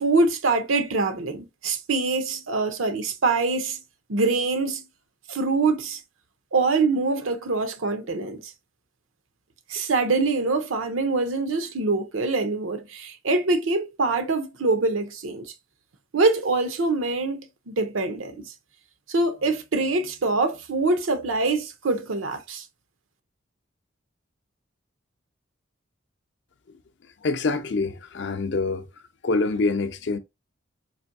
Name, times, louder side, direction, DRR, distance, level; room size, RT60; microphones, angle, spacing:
voice 1, 0.0-3.8 4.1-4.8 5.3-6.0 6.5-8.5 9.7-15.5 16.1-18.5 19.1-22.6, right 3 dB, 85° right, 0.7 m, -24 dB
voice 2, 27.2-28.9 29.2-30.2, left 3 dB, 60° left, 0.5 m, -25 dB
4.2 x 2.6 x 2.5 m
head